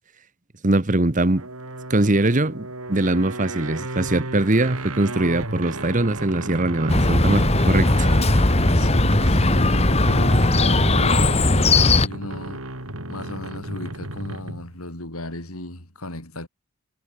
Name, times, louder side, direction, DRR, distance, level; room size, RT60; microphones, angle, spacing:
voice 1, 0.6-1.4 1.9-8.1, right 2 dB, 35° right, 1.2 m, -22 dB
sound 1, 1.4-14.7, right 2 dB, 80° right, 6.3 m, -33 dB
Chirp tweet, 6.9-12.1, left 2 dB, 30° left, 1.8 m, -18 dB
voice 2, 8.7-12.7 13.1-16.5, left 1 dB, 85° left, 7.9 m, -35 dB
head